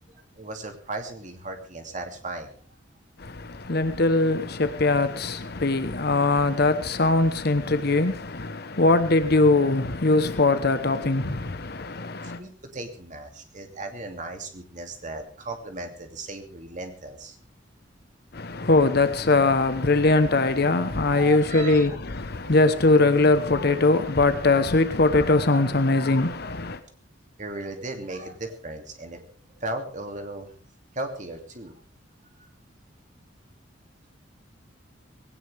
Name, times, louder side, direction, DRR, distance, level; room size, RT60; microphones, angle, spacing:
voice 1, 0.1-2.6 12.2-17.4 21.1-21.9 22.4-22.5 27.4-30.5 30.9-31.7, right 2 dB, 40° right, 2.6 m, -36 dB
voice 2, 3.2-12.4 18.3-26.8, left 2 dB, 55° left, 1.0 m, -21 dB
19.5 x 17.5 x 3.5 m
head